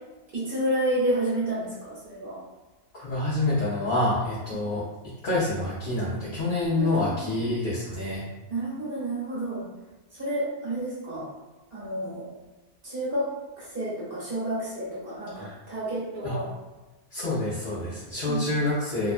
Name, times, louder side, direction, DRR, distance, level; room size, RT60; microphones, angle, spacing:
voice 1, 0.3-2.4 6.7-7.4 8.5-9.7 10.1-11.3 11.7-12.3 12.8-13.3 13.6-16.5 18.3-18.5, right 1 dB, 55° right, -8 dB, 1.2 m, -30 dB
voice 2, 2.9-4.8 5.2-8.2 15.3-15.5 16.2-16.3 17.1-19.1, left 2 dB, 55° left, -9 dB, 0.8 m, -27 dB
2.8 x 2.2 x 2.5 m, 1.1 s
omnidirectional pair, 1.1 m